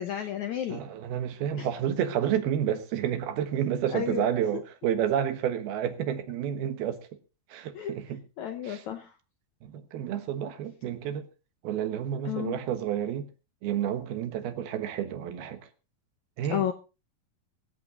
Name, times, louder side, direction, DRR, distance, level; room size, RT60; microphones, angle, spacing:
voice 1, 0.0-0.8 1.6-1.7 3.9-4.6 7.7-8.0 8.4-9.1 12.3-12.6 16.5-16.7, left 10 dB, 75° left, 1.7 m, -32 dB
voice 2, 0.7-7.0 7.5-8.2 8.6-8.8 9.6-11.3 11.6-13.3 13.6-15.6 16.4-16.6, right 10 dB, 75° right, 3.2 m, -30 dB
24.0 x 8.5 x 3.8 m
omnidirectional pair, 4.5 m